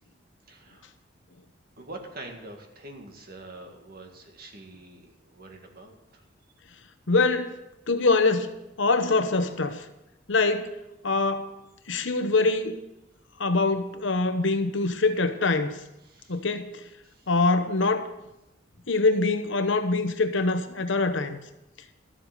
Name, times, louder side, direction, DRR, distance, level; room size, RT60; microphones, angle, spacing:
voice 1, 0.5-0.9 1.8-6.2 16.0-16.4 17.0-17.3, right 2 dB, 50° right, 1.9 m, -45 dB
voice 2, 7.1-7.6 7.9-9.9 10.3-10.8 11.0-11.5 11.9-12.8 13.4-15.8 16.3-16.8 17.3-18.1 18.9-21.4, left 3 dB, 70° left, 1.0 m, -24 dB
13.0 x 7.7 x 6.8 m
head